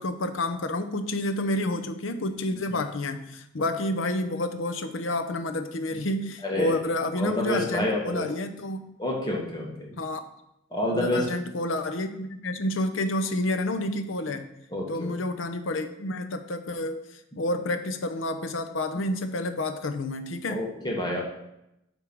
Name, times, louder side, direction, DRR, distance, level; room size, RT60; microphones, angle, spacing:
voice 1, 0.0-8.9 10.0-10.2 10.9-14.5 14.9-17.0 17.4-20.6, left 1 dB, 85° left, 8 dB, 0.7 m, -29 dB
voice 2, 7.2-8.3 9.0-9.9 10.7-11.2 14.7-15.1 20.5-21.2, left 1 dB, 20° left, -2 dB, 1.7 m, -28 dB
9.3 x 3.6 x 6.2 m, 0.84 s
head